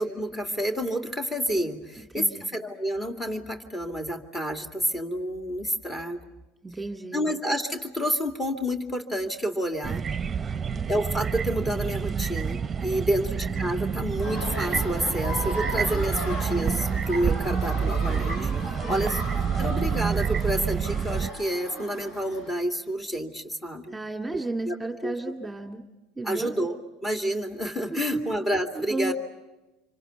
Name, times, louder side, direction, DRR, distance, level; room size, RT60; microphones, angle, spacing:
voice 1, 0.0-6.2 7.1-10.0 10.9-19.2 19.6-24.0 24.3-24.4 24.7-24.8 25.0-25.1 26.2-26.8 27.0-29.1, equal, 20° left, 4 dB, 2.5 m, -29 dB
voice 2, 2.2-2.5 6.6-7.3 10.4-10.7 13.1-13.4 18.8-19.2 23.9-25.8 26.2-26.5 27.9-28.3 28.7-29.1, right 2 dB, 10° right, 4 dB, 2.2 m, -34 dB
sound 1, 9.8-21.3, right 6 dB, 25° right, 0.9 m, -28 dB
sound 2, 14.2-22.5, left 1 dB, 60° left, 7.4 m, -37 dB
26.5 x 25.0 x 8.1 m, 1.1 s
hypercardioid pair, 80°, 0 cm